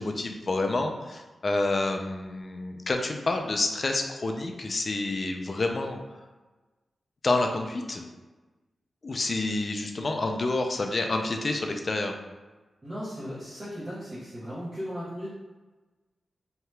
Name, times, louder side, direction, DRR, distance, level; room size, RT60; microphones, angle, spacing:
voice 1, 0.0-6.0 7.2-8.0 9.0-12.2, left 2 dB, 45° left, 3 dB, 0.4 m, -28 dB
voice 2, 12.8-15.3, equal, 30° right, -11 dB, 0.9 m, -36 dB
2.8 x 2.2 x 3.2 m, 1.2 s
wide cardioid pair, 110°, 0 cm